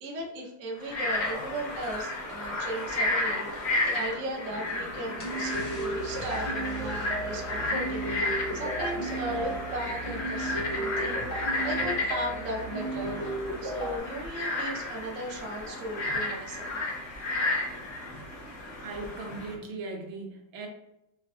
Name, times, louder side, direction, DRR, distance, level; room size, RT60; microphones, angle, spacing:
voice 1, 0.0-16.8, right 1 dB, 60° right, -2 dB, 0.8 m, -37 dB
Frog, 0.8-19.5, left 2 dB, 60° left, 0.6 m, -33 dB
sound 1, 5.2-14.0, right 2 dB, 20° left, 0.6 m, -34 dB
voice 2, 18.8-20.7, right 3 dB, 80° right, 2 dB, 1.5 m, -38 dB
4.5 x 2.3 x 2.3 m, 0.85 s
omnidirectional pair, 2.2 m